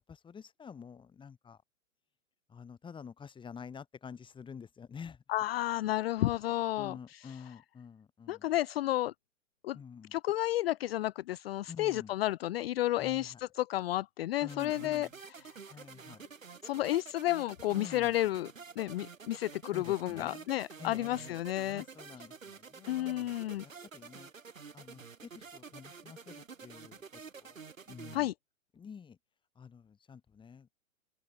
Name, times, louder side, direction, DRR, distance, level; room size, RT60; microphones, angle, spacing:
voice 1, 0.0-1.6 2.5-5.2 6.8-8.5 9.7-10.2 11.7-12.1 13.0-13.4 14.4-15.1 15.7-16.2 17.7-18.1 19.7-20.5 20.8-21.4 21.7-23.4 23.6-24.3 24.7-27.0 27.4-27.6 27.9-28.3 28.7-29.2 29.6-30.7, left 6 dB, 10° left, 2.6 m, -49 dB
voice 2, 5.3-7.2 8.3-9.1 9.6-9.8 10.1-15.1 15.4-15.5 16.6-18.5 18.8-21.8 22.9-23.6 28.1-28.3, left 15 dB, 50° left, 0.6 m, -32 dB
sound 1, 14.5-28.2, right 5 dB, 85° right, 5.3 m, -50 dB
open air
hypercardioid pair, 125°, 39 cm